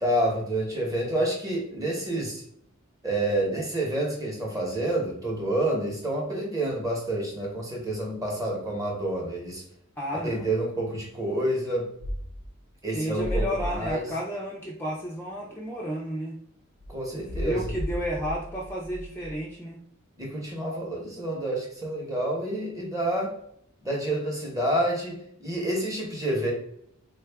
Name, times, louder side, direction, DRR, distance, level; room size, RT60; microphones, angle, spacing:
voice 1, 0.0-2.4 3.0-9.6 10.2-11.8 12.8-14.0 16.9-17.7 20.2-23.3 23.8-26.5, right 1 dB, 15° right, -2 dB, 0.9 m, -28 dB
voice 2, 10.0-10.5 12.9-16.4 17.1-19.8, equal, 10° left, -4 dB, 0.4 m, -32 dB
sound 1, 12.0-12.5 13.1-13.9 16.8-19.3, equal, 90° right, 0.7 m, -33 dB
3.6 x 2.3 x 3.4 m, 0.70 s
head